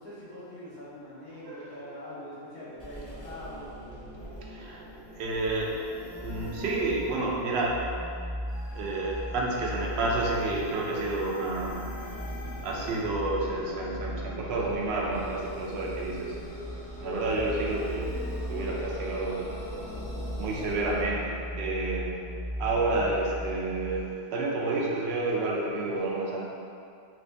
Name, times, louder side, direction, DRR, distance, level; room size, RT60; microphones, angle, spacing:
voice 1, 0.0-3.7, left 1 dB, 70° left, -10 dB, 1.4 m, -43 dB
voice 2, 1.3-1.8 4.4-4.8 5.2-7.8 8.7-11.8 12.6-16.4 17.0-19.5 20.4-22.2 22.6-26.4, right 2 dB, 70° right, -3 dB, 0.6 m, -30 dB
sound 1, 2.8-21.0, equal, 20° left, 0.4 m, -42 dB
sound 2, 5.9-24.0, equal, 40° left, 0.9 m, -39 dB
3.4 x 2.6 x 3.3 m, 2.4 s
omnidirectional pair, 1.7 m